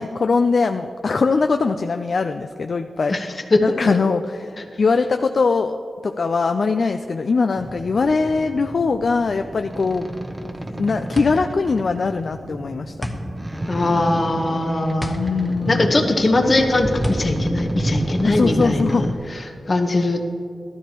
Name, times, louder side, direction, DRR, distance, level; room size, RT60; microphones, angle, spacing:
voice 1, 0.0-3.1 3.6-5.8 6.0-10.1 10.8-12.9 15.1-15.9 18.2-19.1, left 4 dB, 60° left, 7 dB, 0.4 m, -21 dB
voice 2, 3.1-3.6 13.7-15.2 15.7-20.2, left 2 dB, 45° left, 4 dB, 1.1 m, -21 dB
sound 1, 7.5-19.1, right 1 dB, 20° right, 0.7 m, -29 dB
sound 2, 11.1-18.7, left 1 dB, 5° left, 1.1 m, -34 dB
13.0 x 13.0 x 3.0 m, 2.4 s
cardioid pair, 65°, 0 cm